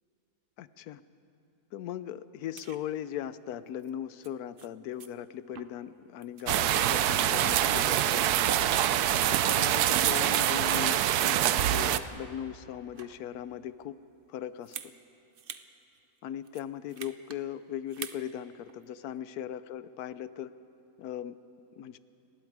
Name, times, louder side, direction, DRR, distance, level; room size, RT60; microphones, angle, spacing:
voice 1, 0.6-1.0 1.7-8.5 9.3-14.0 14.3-14.7 16.2-20.5 21.0-21.4 21.8-22.0, left 10 dB, 70° left, 15 dB, 1.1 m, -39 dB
sound 1, 2.6-2.8 3.8-3.9 4.2-4.3 4.6-4.7 5.0-5.1 5.5-5.9 6.2-6.5 6.9-9.0 9.3-10.2 10.7-11.3 11.6-12.1 12.7-13.3 14.6-14.9 15.3-15.7 15.9-16.0 16.4-17.4 17.9-18.2 18.7-18.8, right 7 dB, 55° right, 0.6 m, -46 dB
sound 2, 6.5-12.0, right 11 dB, 75° right, 1.1 m, -25 dB
29.5 x 20.0 x 4.8 m, 2.8 s
omnidirectional pair, 1.8 m